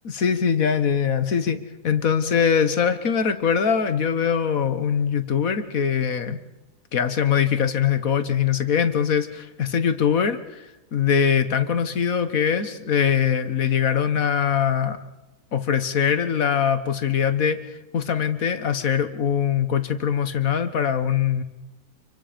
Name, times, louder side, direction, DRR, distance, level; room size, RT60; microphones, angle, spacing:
voice 1, 0.1-1.6 1.8-6.4 6.9-15.0 15.5-21.4, left 7 dB, 60° left, 11 dB, 1.7 m, -22 dB
27.5 x 23.5 x 5.2 m, 1.0 s
omnidirectional pair, 1.7 m